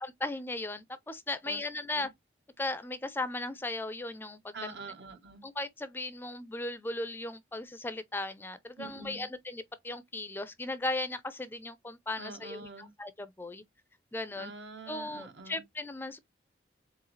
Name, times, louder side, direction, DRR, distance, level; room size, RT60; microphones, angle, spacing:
voice 1, 0.0-2.1 2.6-4.7 5.4-12.7 13.0-13.6 14.1-14.5 14.9-16.2, left 2 dB, 10° left, 0.4 m, -37 dB
voice 2, 4.5-5.4 8.8-9.3 12.2-12.9 14.3-15.6, right 3 dB, 80° right, 1.3 m, -45 dB
4.6 x 3.6 x 3.1 m
head